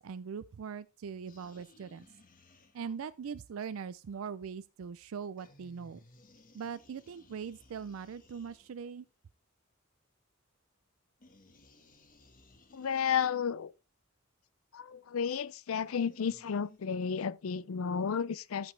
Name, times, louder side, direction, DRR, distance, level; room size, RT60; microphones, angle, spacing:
voice 1, 0.0-2.1 2.7-6.0 6.5-9.1, right 6 dB, 80° right, 0.4 m, -41 dB
sound 1, 1.3-3.2 5.4-9.1 11.2-13.5 15.7-16.8, left 2 dB, 40° left, 1.4 m, -60 dB
voice 2, 12.7-13.7 14.7-18.7, left 7 dB, 85° left, 0.5 m, -32 dB
14.0 x 5.2 x 3.2 m
head